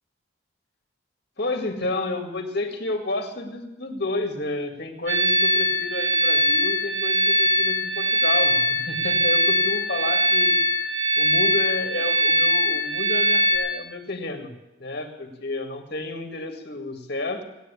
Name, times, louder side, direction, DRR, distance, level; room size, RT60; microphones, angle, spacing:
voice 1, 1.4-10.6 11.2-14.5 14.8-17.4, left 2 dB, 50° left, 4 dB, 2.0 m, -31 dB
sound 1, 5.1-13.6, equal, 55° right, 4.8 m, -21 dB
17.5 x 9.3 x 8.4 m, 0.99 s
head